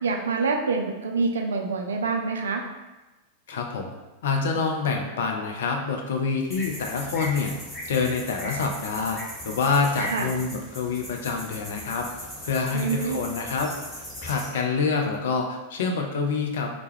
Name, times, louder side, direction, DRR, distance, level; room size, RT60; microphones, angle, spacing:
voice 1, 0.0-2.6 10.1-10.3 12.7-13.2, right 4 dB, 70° right, 2 dB, 0.3 m, -26 dB
voice 2, 3.5-3.9 4.2-7.5 7.9-9.2 9.4-12.1 12.4-13.7 14.2-16.7, left 4 dB, 60° left, 2 dB, 0.4 m, -26 dB
sound 1, 6.5-14.5, equal, 15° left, 1.0 m, -38 dB
2.2 x 2.0 x 3.1 m, 1.1 s
figure-of-eight pair, 90°, 0 cm